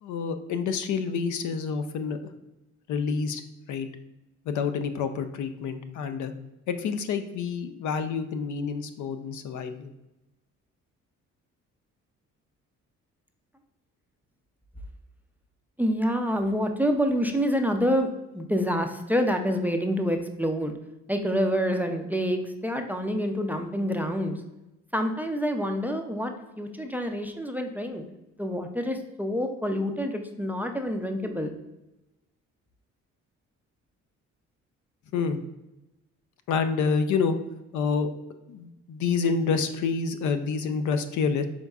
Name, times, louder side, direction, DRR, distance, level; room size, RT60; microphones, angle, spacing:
voice 1, 0.0-2.2 2.9-3.4 3.7-3.9 4.5-6.3 6.7-9.9 35.1-35.4 36.5-37.4 37.7-38.1 38.5-41.4, left 5 dB, 75° left, 9 dB, 0.5 m, -28 dB
voice 2, 15.8-20.7 21.1-24.4 24.9-28.0 28.4-31.5, equal, 5° right, 5 dB, 0.4 m, -27 dB
5.3 x 3.6 x 2.3 m, 0.97 s
cardioid pair, 90°, 30 cm